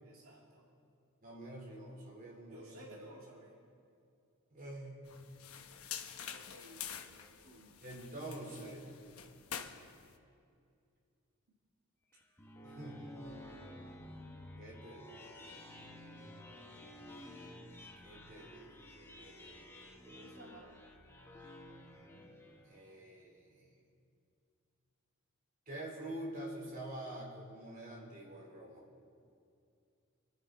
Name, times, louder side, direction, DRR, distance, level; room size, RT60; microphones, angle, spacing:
voice 1, 0.0-0.6 2.5-3.5 6.3-7.8 20.1-20.8, right 1 dB, 75° right, -3 dB, 2.3 m, -55 dB
voice 2, 1.2-2.9 4.5-5.1 7.8-8.8 12.6-13.4 14.6-15.6 18.0-20.1 22.6-23.7 25.7-28.8, right 1 dB, 40° right, -3 dB, 4.1 m, -47 dB
sound 1, 5.1-10.2, left 8 dB, 80° left, 1.0 m, -47 dB
sound 2, 12.1-23.0, left 1 dB, 10° left, 1.1 m, -52 dB
29.0 x 10.5 x 4.2 m, 2.4 s
head